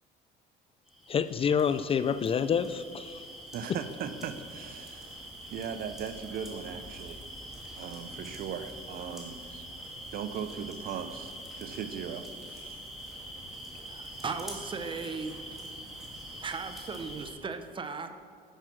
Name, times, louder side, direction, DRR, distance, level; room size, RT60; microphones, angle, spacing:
sound 1, 0.9-17.3, equal, ahead, 2.4 m, -44 dB
voice 1, 1.1-3.2, left 7 dB, 35° left, 14 dB, 0.3 m, -27 dB
voice 2, 3.5-5.2 5.5-7.2 7.7-9.7 10.1-12.8, right 7 dB, 65° right, 10 dB, 0.7 m, -38 dB
voice 3, 13.9-15.8 16.3-18.1, right 5 dB, 30° right, 9 dB, 0.8 m, -37 dB
11.0 x 6.1 x 6.0 m, 2.1 s
cardioid pair, 110°, 17 cm